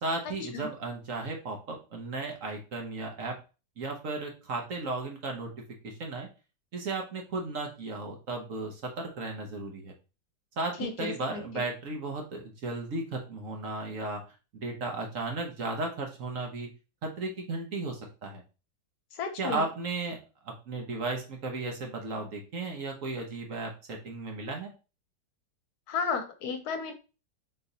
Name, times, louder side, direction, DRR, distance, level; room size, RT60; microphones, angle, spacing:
voice 1, 0.0-3.4 3.8-5.5 5.8-6.3 6.7-9.9 10.6-14.2 14.5-16.7 17.0-18.4 19.4-24.7, right 3 dB, 55° right, 2 dB, 1.2 m, -35 dB
voice 2, 10.8-11.4 19.1-19.6 25.9-26.9, left 5 dB, 70° left, 7 dB, 1.1 m, -33 dB
4.0 x 3.2 x 4.0 m, 0.32 s
omnidirectional pair, 1.8 m